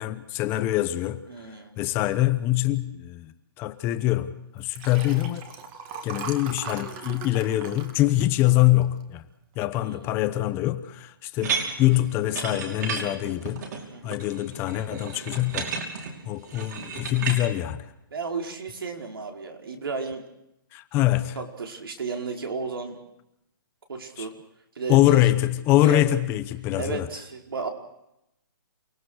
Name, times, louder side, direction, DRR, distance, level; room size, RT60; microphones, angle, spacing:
voice 1, 0.0-1.2 1.8-5.4 6.0-9.2 9.6-13.6 14.0-15.7 16.2-17.9 20.7-21.4 24.2-24.3 24.9-27.1, left 15 dB, 20° left, 1.0 m, -24 dB
voice 2, 1.3-1.8 9.8-10.1 13.9-14.2 18.1-20.2 21.3-23.0 23.9-24.3 24.7-25.2 25.8-26.1 26.7-27.7, right 4 dB, 80° right, 4.8 m, -33 dB
Liquid, 4.6-9.2 9.7-10.0 10.2-10.3, right 6 dB, 25° right, 2.2 m, -39 dB
sound 1, 11.4-17.4, right 5 dB, 50° right, 5.8 m, -33 dB
29.0 x 18.0 x 6.5 m
hypercardioid pair, 160°, 12 cm